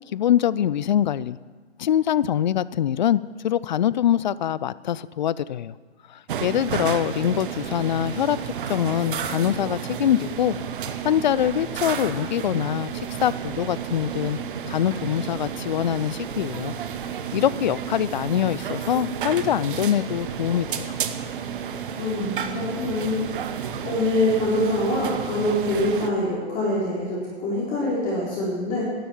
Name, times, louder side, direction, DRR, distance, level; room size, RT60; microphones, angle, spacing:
voice 1, 0.1-1.4 1.8-5.7 6.1-8.4 8.7-10.6 10.8-14.4 14.7-16.8 17.3-21.0, left 10 dB, 45° left, 19 dB, 0.4 m, -24 dB
sound 1, 6.3-26.1, right 8 dB, 50° right, 1.1 m, -32 dB
voice 2, 21.9-28.9, left 1 dB, 25° left, -7 dB, 4.3 m, -25 dB
12.5 x 11.5 x 7.2 m, 1.4 s
figure-of-eight pair, 130°, 33 cm